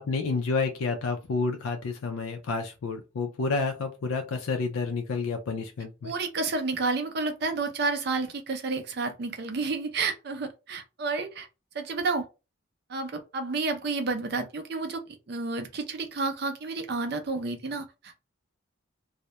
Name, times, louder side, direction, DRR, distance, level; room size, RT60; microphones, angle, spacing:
voice 1, 0.0-6.1, left 4 dB, 90° left, 0.4 m, -30 dB
voice 2, 6.0-11.5 11.7-12.3 12.9-15.0 15.3-18.2, right 3 dB, 50° right, 0.5 m, -30 dB
2.2 x 2.0 x 2.8 m
head